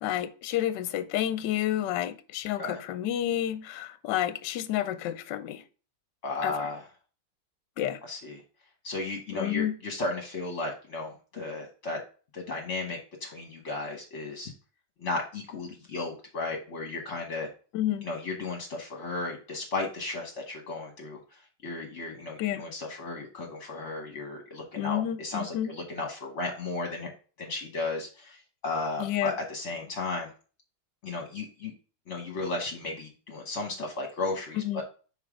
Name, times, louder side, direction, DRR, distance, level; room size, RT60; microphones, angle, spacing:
voice 1, 0.0-5.6 6.4-6.6 7.8-8.0 9.3-9.8 17.7-18.1 22.4-22.6 24.8-25.7 29.0-29.3 34.6-34.8, left 12 dB, 70° left, 1.1 m, -30 dB
voice 2, 6.2-6.8 8.0-8.4 8.8-12.0 12.3-14.5 15.0-17.5 18.0-27.1 27.4-30.3 31.0-31.7 32.1-34.8, left 3 dB, 45° left, 1.1 m, -34 dB
5.5 x 3.8 x 4.8 m
omnidirectional pair, 2.3 m